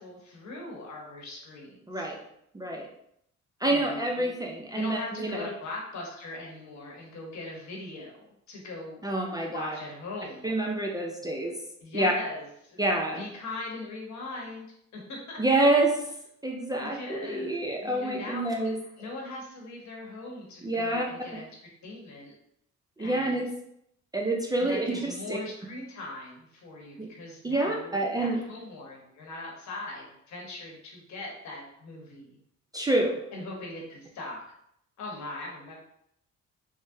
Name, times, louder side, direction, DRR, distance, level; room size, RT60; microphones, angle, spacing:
voice 1, 0.0-2.1 3.6-4.4 4.7-9.0 9.4-10.5 11.2-11.3 11.8-12.8 13.1-14.6 14.9-15.4 16.8-18.5 19.0-21.5 21.8-22.3 23.0-23.4 24.6-32.4 33.3-34.4 35.0-35.7, left 2 dB, 70° left, -1 dB, 1.0 m, -40 dB
voice 2, 1.9-2.2 2.5-2.9 3.6-5.5 9.0-9.8 10.4-11.6 11.9-12.1 12.8-13.2 15.4-15.9 16.4-18.8 20.6-21.0 21.3-21.4 23.0-23.5 24.1-25.0 25.3-25.4 27.0-27.1 27.4-28.4 32.7-33.2, right 2 dB, 15° right, 0 dB, 0.4 m, -27 dB
3.5 x 2.0 x 2.6 m, 0.74 s
cardioid pair, 90°, 30 cm